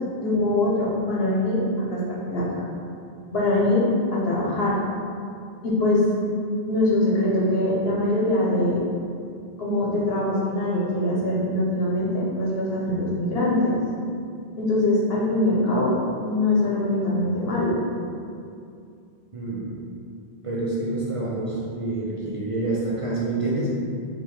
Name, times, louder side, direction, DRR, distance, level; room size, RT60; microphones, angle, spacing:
voice 1, 0.2-2.0 2.3-2.6 3.3-4.8 5.6-6.0 6.7-8.8 9.6-13.8 14.6-16.0 16.2-17.8, left 1 dB, 75° left, -6 dB, 1.2 m, -23 dB
voice 2, 19.3-19.8 20.4-23.7, right 2 dB, 40° right, -6 dB, 0.5 m, -27 dB
3.4 x 3.1 x 4.4 m, 2.4 s
omnidirectional pair, 1.0 m